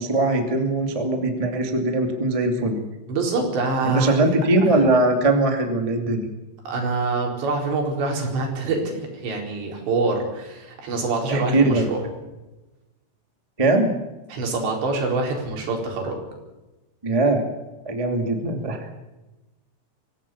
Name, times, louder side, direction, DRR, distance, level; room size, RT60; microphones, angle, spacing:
voice 1, 0.0-2.8 3.8-6.3 11.3-11.9 13.6-13.9 17.0-17.4 17.8-18.9, right 2 dB, 20° right, 4 dB, 0.9 m, -21 dB
voice 2, 3.1-4.2 6.7-12.0 14.3-16.2, right 3 dB, 65° right, 1 dB, 6.5 m, -25 dB
24.0 x 16.0 x 7.1 m, 1.1 s
omnidirectional pair, 5.5 m